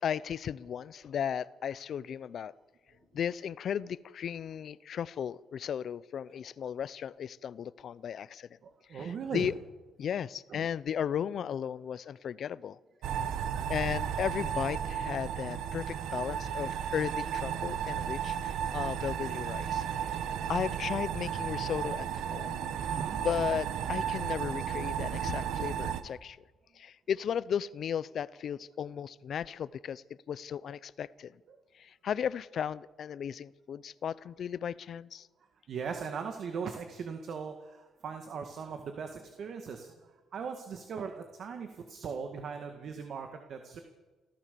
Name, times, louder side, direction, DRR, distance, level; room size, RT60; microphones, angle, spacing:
voice 1, 0.0-2.5 3.1-8.5 8.9-9.5 10.0-12.8 13.7-19.8 20.1-20.2 20.5-22.6 22.9-26.4 26.7-31.3 31.7-35.3, left 8 dB, 60° left, 19 dB, 0.7 m, -35 dB
voice 2, 8.6-9.5 10.5-10.7 13.2-13.6 22.9-23.2 24.4-24.5 31.5-31.6 35.7-43.8, right 6 dB, 60° right, 5 dB, 1.9 m, -39 dB
sound 1, 13.0-26.0, right 8 dB, 80° right, 1.3 m, -34 dB
26.0 x 14.5 x 6.9 m, 1.2 s
cardioid pair, 90°, 0 cm